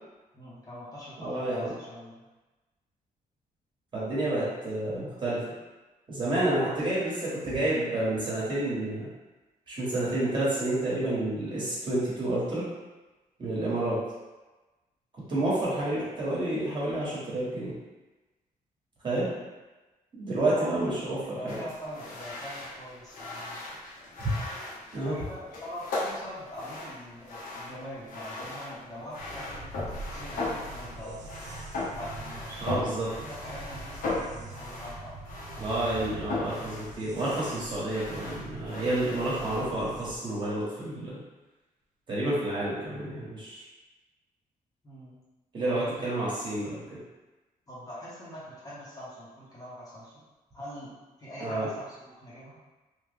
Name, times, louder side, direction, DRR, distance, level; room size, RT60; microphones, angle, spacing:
voice 1, 0.3-2.2 6.3-6.8 20.4-20.8 21.2-23.6 25.0-31.2 31.9-32.9 33.2-35.2 44.8-45.1 45.6-46.1 47.7-50.2 50.5-50.9 51.2-52.6, equal, 25° left, -8 dB, 0.8 m, -43 dB
voice 2, 1.2-1.7 3.9-5.4 6.1-9.1 9.7-12.6 13.4-14.0 15.3-17.7 19.0-19.3 20.1-21.6 24.9-25.1 32.6-33.1 35.6-41.2 42.1-43.6 45.5-47.0 51.4-51.7, right 1 dB, 30° right, -8 dB, 1.2 m, -29 dB
sound 1, 21.5-39.8, left 2 dB, 70° left, 0.8 m, -38 dB
sound 2, 29.2-40.2, right 2 dB, 55° right, 0.4 m, -44 dB
3.3 x 2.2 x 3.4 m, 1.2 s
wide cardioid pair, 155°, 15 cm